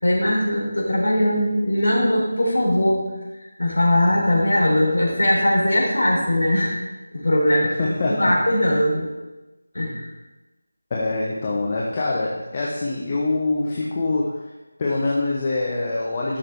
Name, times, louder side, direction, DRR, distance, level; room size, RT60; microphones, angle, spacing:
voice 1, 0.0-3.1 3.6-6.7 7.1-7.8 8.2-9.1 9.7-10.1, left 1 dB, 60° left, -3 dB, 4.2 m, -20 dB
voice 2, 7.6-8.4 10.9-14.4 14.8-16.4, left 2 dB, 25° left, -4 dB, 1.1 m, -24 dB
12.5 x 6.6 x 4.6 m, 1.1 s
figure-of-eight pair, 165°, 0 cm